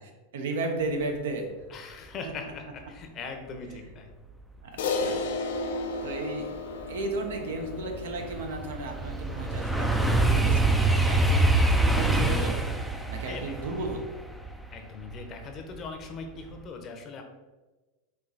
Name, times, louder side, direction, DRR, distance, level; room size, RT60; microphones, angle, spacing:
voice 1, 0.0-1.5 4.6-5.2 6.0-6.6 6.9-11.4 11.8-12.5 13.1-14.0, right 2 dB, 85° right, 4 dB, 0.8 m, -34 dB
voice 2, 1.7-4.1 13.2-13.8 14.7-17.2, left 4 dB, 30° left, 4 dB, 0.7 m, -40 dB
Crash cymbal, 4.8-9.4, left 3 dB, 85° left, 0.6 m, -33 dB
sound 1, 6.1-6.2 6.7-15.8 16.2-16.6, right 2 dB, ahead, 0.4 m, -25 dB
4.4 x 3.0 x 3.9 m, 1.2 s
supercardioid pair, 140°, 0 cm